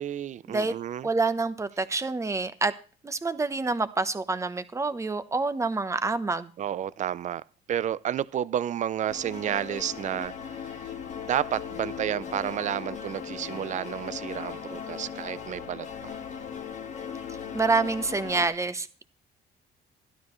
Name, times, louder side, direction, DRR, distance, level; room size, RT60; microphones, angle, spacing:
voice 1, 0.0-1.1 6.6-7.4 7.7-10.3 10.7-10.8 11.2-16.2, right 10 dB, 45° right, 0.6 m, -31 dB
voice 2, 1.0-2.7 3.0-6.5 17.5-19.0, right 3 dB, 15° right, 0.9 m, -27 dB
sound 1, 9.1-18.5, left 7 dB, 45° left, 1.6 m, -38 dB
12.5 x 12.0 x 3.1 m
cardioid pair, 110°, 17 cm